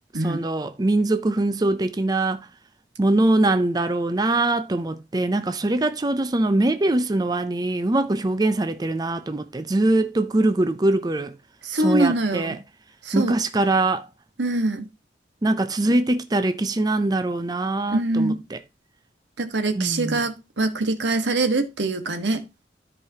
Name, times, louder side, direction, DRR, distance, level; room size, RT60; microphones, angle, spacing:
voice 1, 0.2-2.5 3.0-11.3 11.7-12.6 13.1-14.1 15.4-18.6 19.8-20.2, right 2 dB, 20° right, 0.5 m, -22 dB
voice 2, 11.6-12.6 13.0-13.4 14.4-14.9 15.8-15.9 17.9-18.4 19.4-22.4, right 2 dB, 85° right, 1.3 m, -24 dB
13.5 x 4.8 x 2.8 m
head